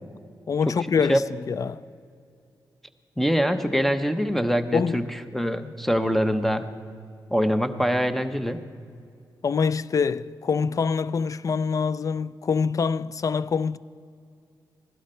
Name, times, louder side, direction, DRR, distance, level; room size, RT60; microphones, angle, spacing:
voice 1, 0.5-1.8 4.7-5.1 5.6-5.7 9.4-13.8, left 5 dB, 45° left, 0.3 m, -25 dB
voice 2, 3.2-6.7 7.3-8.6, equal, 5° left, 0.8 m, -24 dB
16.5 x 12.5 x 4.3 m
cardioid pair, 65°, 8 cm